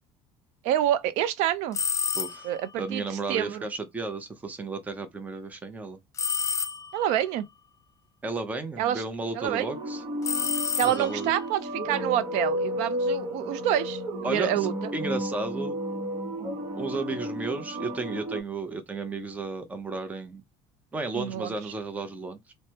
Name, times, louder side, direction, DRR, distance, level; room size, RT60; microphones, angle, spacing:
voice 1, 0.6-1.8 2.4-3.7 6.9-7.4 8.8-9.0 9.3-9.7 10.7-14.9 21.2-21.5, right 11 dB, 75° right, 0.4 m, -27 dB
sound 1, 1.7-2.6 6.2-7.2 10.2-11.4, left 6 dB, 25° left, 0.3 m, -29 dB
voice 2, 2.1-2.5 2.8-6.0 8.2-10.0 10.8-11.3 14.2-15.8 16.7-20.4 20.9-22.5, right 3 dB, 15° right, 0.6 m, -33 dB
sound 2, 9.4-18.4, equal, 45° right, 1.0 m, -32 dB
3.2 x 2.0 x 2.8 m
cardioid pair, 135°, 12 cm